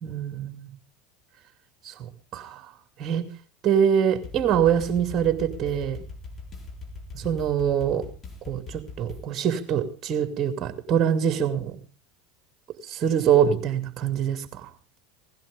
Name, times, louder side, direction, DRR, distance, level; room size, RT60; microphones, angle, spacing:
voice 1, 0.0-0.7 1.8-2.6 3.0-3.2 3.6-6.0 7.1-8.0 8.5-11.8 12.9-14.7, right 8 dB, 40° right, 9 dB, 2.5 m, -24 dB
sound 1, 4.2-9.3, left 3 dB, 30° left, 4.1 m, -40 dB
17.5 x 16.5 x 3.5 m, 0.35 s
hypercardioid pair, 80°, 0 cm